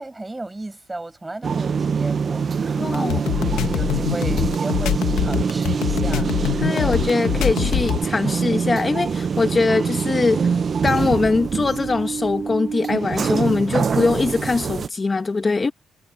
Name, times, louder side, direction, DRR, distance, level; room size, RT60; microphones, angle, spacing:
voice 1, 0.0-3.4 3.6-6.3 6.7-7.0, right 2 dB, 15° right, 6.9 m, -34 dB
sound 1, 1.4-14.9, right 6 dB, 45° right, 0.6 m, -24 dB
voice 2, 2.8-3.2 6.6-10.5 10.8-15.7, left 3 dB, 30° left, 1.0 m, -22 dB
sound 2, 2.9-8.0, left 13 dB, 85° left, 1.1 m, -23 dB
sound 3, 8.8-11.3, right 10 dB, 70° right, 5.2 m, -43 dB
cardioid pair, 90°, 0 cm